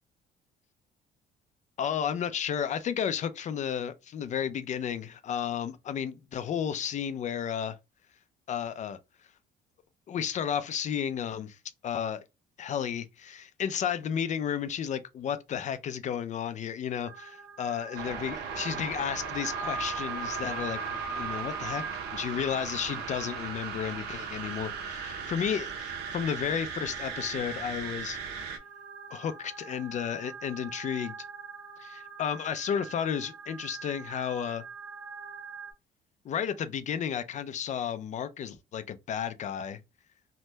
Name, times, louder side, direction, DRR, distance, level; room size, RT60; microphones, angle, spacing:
voice 1, 1.8-7.8 8.5-9.0 10.1-12.2 12.6-21.8 22.1-28.2 29.1-31.1 31.8-34.6 36.2-39.8, left 8 dB, 45° left, 0.4 m, -33 dB
sound 1, 17.0-35.7, right 5 dB, 25° right, 1.1 m, -42 dB
sound 2, 18.0-28.6, right 6 dB, 80° right, 0.7 m, -38 dB
3.3 x 2.1 x 2.8 m
cardioid pair, 110°, 17 cm